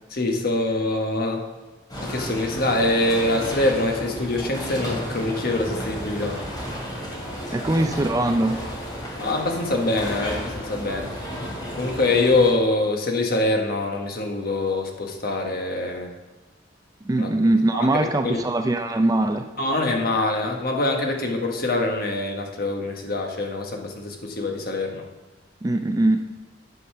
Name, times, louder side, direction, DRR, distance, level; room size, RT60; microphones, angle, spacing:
voice 1, 0.1-1.4 2.0-6.4 9.2-11.1 11.8-16.1 17.2-17.3 17.7-18.4 19.6-25.0, left 2 dB, 55° left, 2 dB, 1.4 m, -24 dB
sound 1, 1.9-12.5, equal, 25° left, 2.9 m, -33 dB
voice 2, 7.5-8.6 17.1-19.4 25.6-26.3, right 2 dB, 20° right, 7 dB, 0.4 m, -21 dB
9.3 x 5.4 x 5.6 m, 1.2 s
head